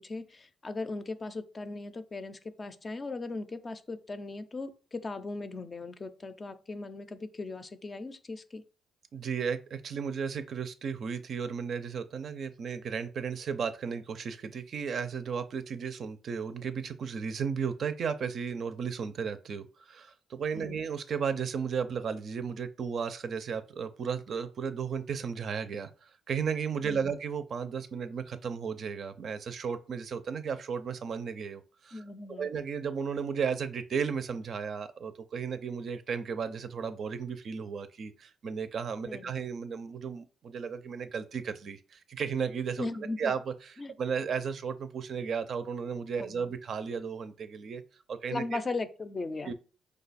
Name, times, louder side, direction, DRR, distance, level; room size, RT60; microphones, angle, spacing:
voice 1, 0.0-8.6 20.5-20.8 26.8-27.1 31.9-32.5 39.0-39.3 42.8-43.3 43.8-43.9 46.2-46.5 48.3-49.5, left 3 dB, 30° left, 10 dB, 0.5 m, -38 dB
voice 2, 9.1-32.0 32.4-42.9 43.2-47.8 48.1-48.4 49.5-49.6, right 6 dB, 55° right, 10 dB, 0.5 m, -34 dB
4.9 x 2.3 x 4.1 m, 0.37 s
cardioid pair, 90°, 0 cm